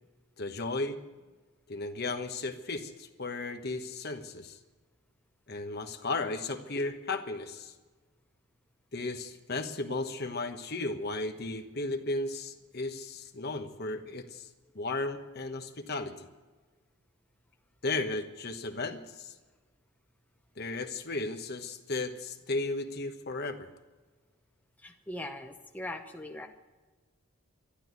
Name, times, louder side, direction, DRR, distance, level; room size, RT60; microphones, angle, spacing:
voice 1, 0.4-1.0 1.7-4.6 5.5-7.7 8.9-14.5 14.7-16.3 17.8-19.3 20.6-23.7, left 2 dB, 50° left, 7 dB, 1.2 m, -35 dB
voice 2, 24.8-26.5, left 1 dB, 5° left, 3 dB, 0.9 m, -40 dB
12.0 x 12.0 x 9.4 m, 1.3 s
head